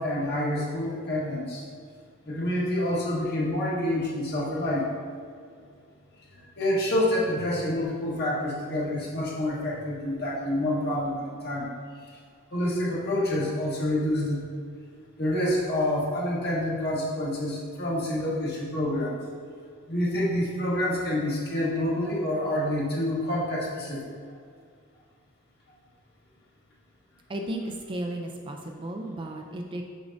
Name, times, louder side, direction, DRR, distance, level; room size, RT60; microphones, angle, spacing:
voice 1, 0.0-1.6 2.3-4.9 6.3-11.7 12.0-12.2 12.5-14.4 15.2-19.2 19.9-24.0, left 1 dB, 50° left, -5 dB, 1.5 m, -27 dB
voice 2, 27.3-29.8, right 1 dB, 25° right, 2 dB, 0.4 m, -34 dB
6.3 x 6.1 x 2.6 m, 2.1 s
head